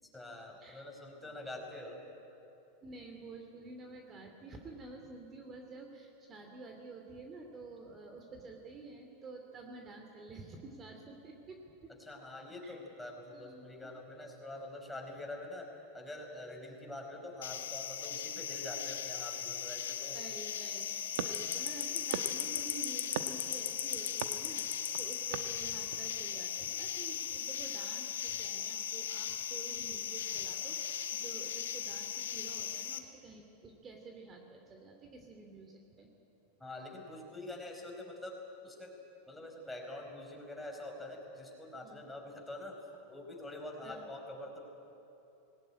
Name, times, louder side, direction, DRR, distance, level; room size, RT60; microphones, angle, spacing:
voice 1, 0.0-2.0 12.0-15.7 15.9-20.3 36.6-38.9 39.3-42.8 43.1-44.6, left 1 dB, 5° left, 0 dB, 4.9 m, -45 dB
voice 2, 2.8-11.9 12.6-12.8 13.3-13.9 20.1-36.1 41.8-42.0 43.8-44.1, right 3 dB, 30° right, 3 dB, 2.6 m, -50 dB
sound 1, 17.4-33.0, left 9 dB, 85° left, 1.4 m, -38 dB
sound 2, 21.2-26.3, right 9 dB, 75° right, 1.1 m, -44 dB
19.5 x 18.0 x 10.0 m, 2.8 s
hypercardioid pair, 115°, 0 cm